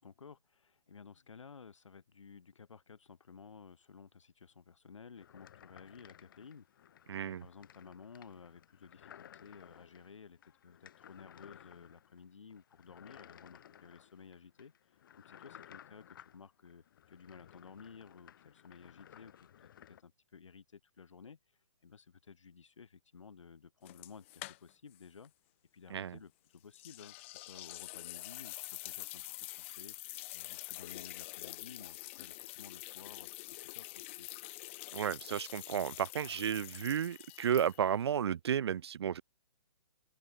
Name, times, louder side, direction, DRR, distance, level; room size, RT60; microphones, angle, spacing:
voice 1, 0.0-6.7 7.2-14.7 15.2-19.3 19.6-21.4 21.8-25.3 25.7-29.2 29.6-30.0 30.3-34.3, left 6 dB, 85° left, 7.0 m, -55 dB
sound 1, 5.2-20.0, left 10 dB, 45° left, 2.7 m, -58 dB
voice 2, 7.1-7.5 25.9-26.2 34.9-39.2, right 8 dB, 60° right, 0.6 m, -33 dB
sound 2, 23.9-25.0 25.2-25.3 26.7-38.0, left 20 dB, 25° left, 1.2 m, -46 dB
open air
hypercardioid pair, 165°, 15 cm